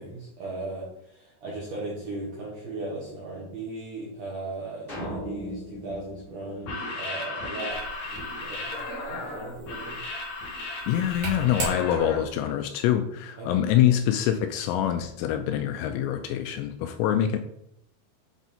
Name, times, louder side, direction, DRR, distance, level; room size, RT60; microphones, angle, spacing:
voice 1, 0.0-7.8 8.1-8.7 9.1-10.0 13.4-13.5, right 2 dB, 75° right, -5 dB, 1.9 m, -37 dB
sound 1, 4.9-7.4, equal, 45° left, 0.7 m, -39 dB
sound 2, 6.5-12.2, left 2 dB, 65° left, 2.7 m, -35 dB
sound 3, 7.7-12.4, right 3 dB, 50° right, 2.2 m, -39 dB
voice 2, 10.9-17.4, left 11 dB, 85° left, 7 dB, 2.7 m, -25 dB
8.3 x 3.6 x 4.2 m, 0.77 s
omnidirectional pair, 5.5 m